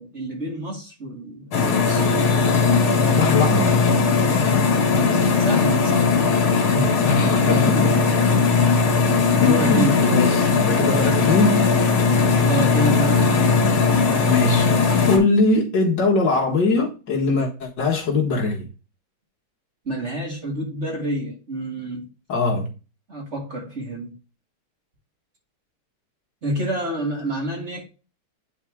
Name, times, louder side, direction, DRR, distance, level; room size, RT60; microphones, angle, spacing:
voice 1, 0.0-1.6 1.8-2.4 5.0-6.1 7.5-8.0 9.4-10.0 12.5-13.6 19.9-22.1 23.1-24.1 26.4-27.8, right 1 dB, 30° right, 2.3 m, -28 dB
sound 1, 1.5-15.2, left 4 dB, 75° left, 2.5 m, -18 dB
voice 2, 3.1-3.8 6.7-7.9 9.4-11.7 14.2-14.7 15.1-18.7 22.3-22.7, left 3 dB, 55° left, 2.2 m, -21 dB
10.0 x 4.2 x 3.6 m
omnidirectional pair, 2.4 m